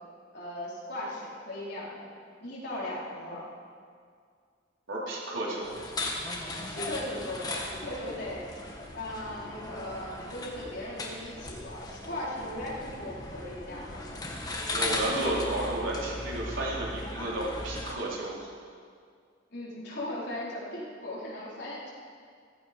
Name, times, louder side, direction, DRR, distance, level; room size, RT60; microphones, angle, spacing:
voice 1, 0.3-2.1 2.4-3.5 6.7-8.6 8.9-14.0 19.5-21.9, left 1 dB, 60° left, -6 dB, 4.3 m, -38 dB
voice 2, 4.9-5.7 14.7-18.5, right 1 dB, 85° right, -5 dB, 4.2 m, -32 dB
sound 1, 5.6-17.9, left 2 dB, 20° left, 1.7 m, -37 dB
15.0 x 15.0 x 5.3 m, 2.2 s
head